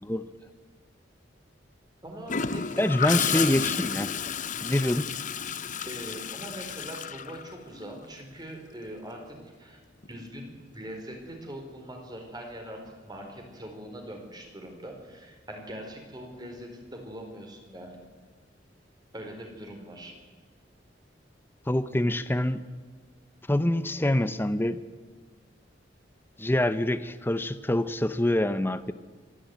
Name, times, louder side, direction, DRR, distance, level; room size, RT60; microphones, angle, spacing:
voice 1, 2.0-3.5 5.8-9.8 10.1-18.0 19.1-20.1, equal, 25° right, 3 dB, 4.2 m, -42 dB
Gurgling / Toilet flush, 2.3-8.0 10.0-10.3, left 7 dB, 45° left, 0.8 m, -31 dB
voice 2, 2.8-4.1 4.6-5.1 21.7-22.6 23.5-24.8 26.4-28.9, left 1 dB, 10° left, 12 dB, 0.7 m, -25 dB
26.0 x 11.5 x 9.4 m, 1.4 s
head